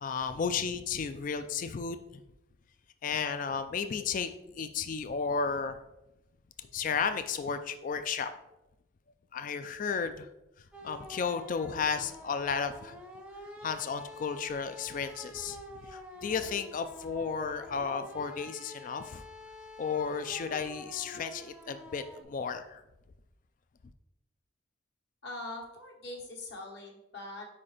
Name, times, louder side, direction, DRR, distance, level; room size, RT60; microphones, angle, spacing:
voice 1, 0.0-2.0 3.0-4.3 4.6-5.8 6.7-8.3 9.3-10.3 10.8-13.0 13.6-15.6 15.9-19.2 19.8-22.8, left 6 dB, 45° left, 9 dB, 0.3 m, -33 dB
sound 1, 10.7-22.2, left 1 dB, 5° right, 0.6 m, -48 dB
voice 2, 25.2-27.5, left 2 dB, 65° left, -1 dB, 1.4 m, -42 dB
4.9 x 4.3 x 4.9 m, 0.90 s
head